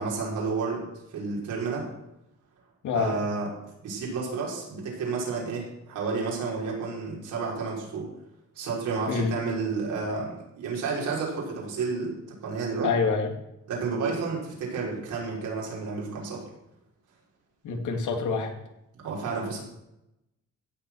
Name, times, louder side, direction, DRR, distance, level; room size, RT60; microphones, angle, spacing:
voice 1, 0.0-1.9 2.9-3.5 3.8-8.1 8.5-12.9 13.7-16.4 19.0-19.6, right 4 dB, 85° right, -3 dB, 5.5 m, -31 dB
voice 2, 2.8-3.1 9.1-9.3 12.8-13.3 17.6-18.5, left 5 dB, 75° left, 4 dB, 2.6 m, -26 dB
16.0 x 7.3 x 6.4 m, 0.87 s
cardioid pair, 90°, 30 cm